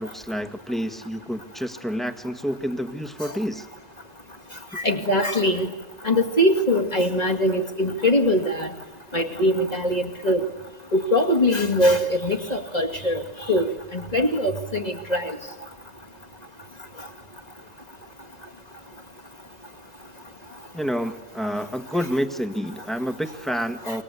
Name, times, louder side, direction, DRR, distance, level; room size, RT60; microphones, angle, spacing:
voice 1, 0.0-3.7 20.7-24.0, equal, ahead, 8 dB, 1.7 m, -28 dB
voice 2, 4.7-5.7 6.0-8.7 9.1-10.4 10.9-15.4 23.9-24.0, left 1 dB, 35° left, 2 dB, 2.4 m, -22 dB
27.5 x 23.5 x 8.4 m, 1.2 s
omnidirectional pair, 1.2 m